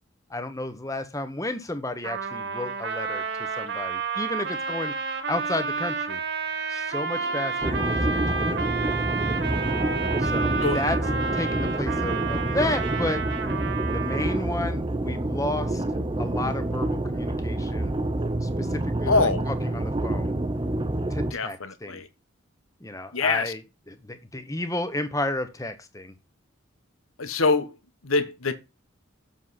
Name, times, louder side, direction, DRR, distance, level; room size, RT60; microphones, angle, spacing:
voice 1, 0.3-3.2 3.6-4.9 5.3-6.2 6.7-9.0 10.2-11.0 11.3-13.3 13.9-15.8 16.2-17.9 18.4-20.4 21.1-22.0 22.8-26.1, left 1 dB, 15° left, 1.1 m, -32 dB
Trumpet, 2.0-14.5, right 5 dB, 55° right, 1.7 m, -30 dB
sound 1, 7.1-12.3, right 2 dB, 80° right, 2.0 m, -41 dB
sound 2, 7.6-21.3, right 1 dB, 25° right, 0.6 m, -27 dB
voice 2, 19.1-19.4 21.3-22.1 23.1-23.5 27.2-27.7 28.0-28.6, left 3 dB, 85° left, 1.2 m, -24 dB
7.5 x 7.3 x 4.1 m
head